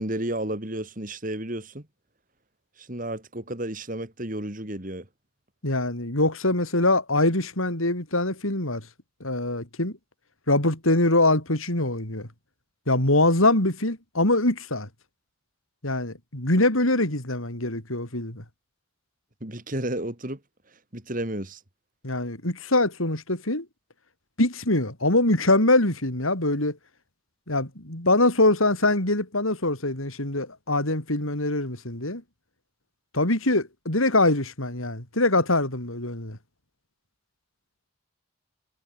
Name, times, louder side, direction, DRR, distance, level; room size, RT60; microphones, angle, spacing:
voice 1, 0.0-1.9 2.8-5.1 19.4-20.4 20.9-21.6, right 1 dB, 40° right, 3.0 m, -32 dB
voice 2, 5.6-8.8 9.2-9.9 10.5-12.3 12.9-14.9 15.8-18.4 22.0-23.6 24.4-26.8 27.5-32.2 33.1-36.4, left 2 dB, 85° left, 6.2 m, -23 dB
head